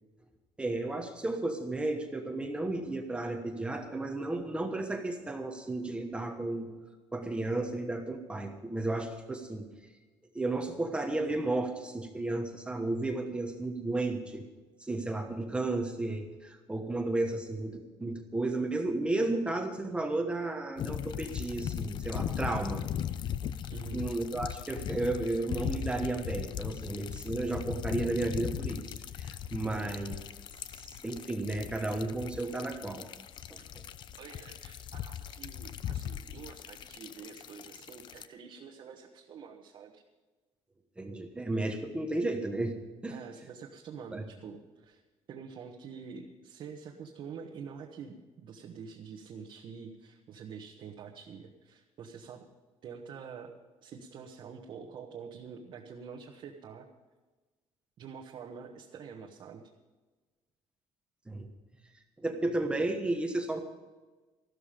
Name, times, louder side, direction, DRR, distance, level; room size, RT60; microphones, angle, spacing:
voice 1, 0.6-6.7 7.1-9.7 10.3-14.4 14.8-22.8 23.9-30.1 30.7-33.0 33.5-33.6 41.0-42.8 43.0-43.2 44.1-44.2 61.3-61.5 62.2-63.6, right 2 dB, 10° right, 4 dB, 1.2 m, -33 dB
sound 1, 20.8-38.3, left 9 dB, 45° left, 0.6 m, -38 dB
voice 2, 23.7-24.1 29.6-29.9 33.6-33.7 34.2-40.0 43.1-45.0 45.3-52.5 52.8-53.5 53.8-56.9 58.0-59.6, right 6 dB, 45° right, 0 dB, 1.3 m, -46 dB
14.0 x 13.0 x 5.1 m, 1.3 s
cardioid pair, 165°, 11 cm